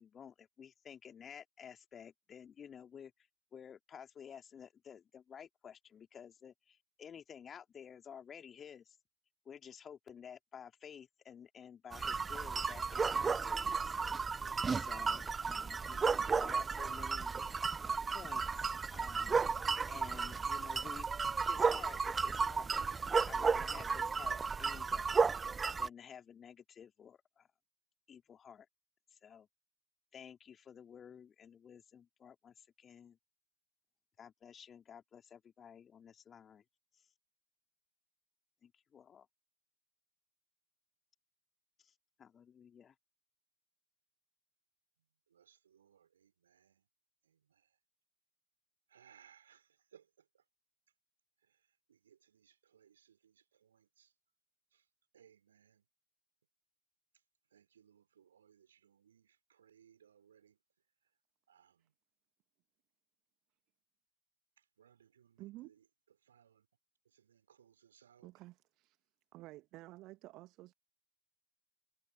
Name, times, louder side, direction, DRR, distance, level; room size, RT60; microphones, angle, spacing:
voice 1, 0.0-9.0 9.4-14.0 14.7-17.4 18.1-19.4 19.9-22.7 23.3-25.1 25.8-27.5 28.1-28.7 29.1-29.5 30.1-33.2 34.2-36.6 36.9-37.1 38.6-39.3 41.8-42.9, left 8 dB, 20° left, 3.0 m, -53 dB
sound 1, 11.9-25.9, right 5 dB, 15° right, 0.6 m, -34 dB
voice 2, 45.3-46.8 47.3-47.7 48.9-50.1 51.9-54.1 54.7-54.8 55.1-55.8 57.5-60.6 61.5-61.9 64.8-65.8 66.2-66.7 67.1-68.3, right 8 dB, 65° right, 5.2 m, -66 dB
voice 3, 65.4-65.7 68.2-69.0 69.3-70.7, right 18 dB, 40° right, 1.4 m, -52 dB
figure-of-eight pair, 90°, 0 cm